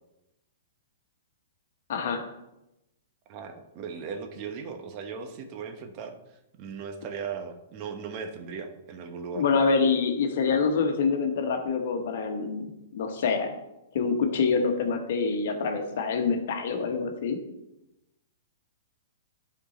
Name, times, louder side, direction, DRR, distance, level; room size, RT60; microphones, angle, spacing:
voice 1, 1.9-2.3 9.3-13.5 13.9-17.4, left 5 dB, 60° left, 5 dB, 1.3 m, -26 dB
voice 2, 3.3-6.2 6.6-9.4, right 6 dB, 40° right, 5 dB, 1.0 m, -37 dB
9.9 x 4.5 x 4.2 m, 0.91 s
hypercardioid pair, 120°, 0 cm